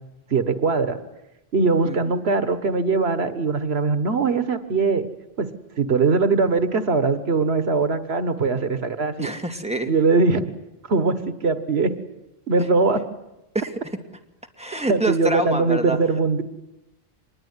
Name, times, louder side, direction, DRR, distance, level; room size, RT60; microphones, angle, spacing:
voice 1, 0.3-1.0 1.5-5.1 5.4-5.5 5.8-9.3 9.9-10.5 10.9-11.9 12.5-13.0 14.9-16.4, right 4 dB, 85° right, 12 dB, 1.7 m, -21 dB
voice 2, 9.2-9.9 13.5-13.7 14.6-16.0, right 2 dB, 5° right, 5 dB, 2.4 m, -26 dB
25.5 x 21.0 x 9.7 m, 0.93 s
omnidirectional pair, 1.0 m